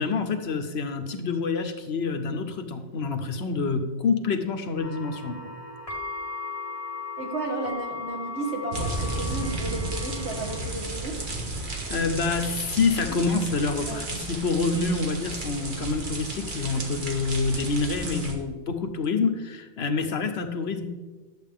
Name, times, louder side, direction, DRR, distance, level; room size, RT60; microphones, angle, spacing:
voice 1, 0.0-5.5 11.9-20.9, left 4 dB, 70° left, 7 dB, 1.1 m, -27 dB
sound 1, 4.8-10.6, left 4 dB, 30° left, 1.7 m, -37 dB
voice 2, 7.2-11.2 13.8-14.0, right 2 dB, 75° right, 1 dB, 1.7 m, -33 dB
sound 2, 8.7-18.3, right 2 dB, 50° right, 1.4 m, -33 dB
11.0 x 7.4 x 3.6 m, 1.3 s
omnidirectional pair, 1.1 m